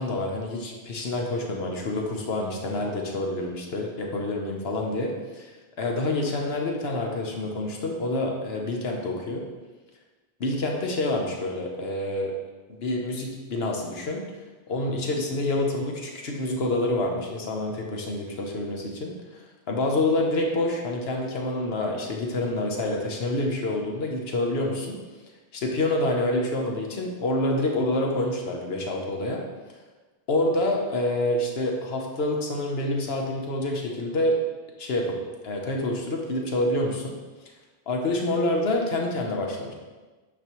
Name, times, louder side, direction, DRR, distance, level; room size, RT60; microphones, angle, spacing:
voice 1, 0.0-5.5 5.8-9.4 10.4-12.3 12.7-14.2 14.7-19.1 19.7-25.0 25.5-29.4 30.3-34.4 34.8-35.1 35.4-37.2 37.9-39.7, left 2 dB, 80° left, 1 dB, 1.1 m, -27 dB
8.4 x 5.3 x 3.0 m, 1.3 s
omnidirectional pair, 1.0 m